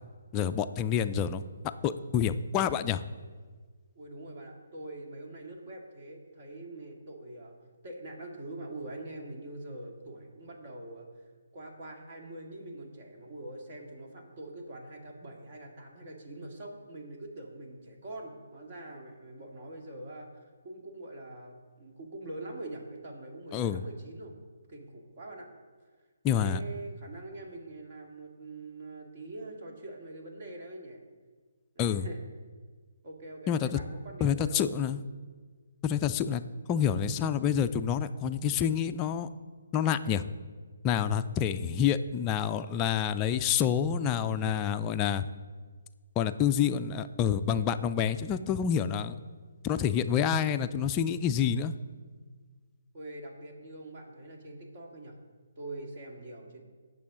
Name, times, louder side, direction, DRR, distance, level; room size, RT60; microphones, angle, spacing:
voice 1, 0.3-1.4 1.8-3.0 23.5-23.8 26.2-26.6 31.8-32.1 33.5-33.8 34.2-35.0 35.8-36.4 36.7-39.3 39.7-40.3 40.8-45.3 46.2-49.2 49.6-51.7, left 8 dB, 20° left, 9 dB, 0.4 m, -28 dB
voice 2, 3.9-7.6 7.8-11.1 11.5-24.3 24.7-25.5 26.3-31.0 31.8-32.2 33.0-34.6 52.9-55.2 55.6-56.6, right 2 dB, 45° right, 1 dB, 2.0 m, -44 dB
17.0 x 6.2 x 3.7 m, 1.5 s
figure-of-eight pair, 145°, 0 cm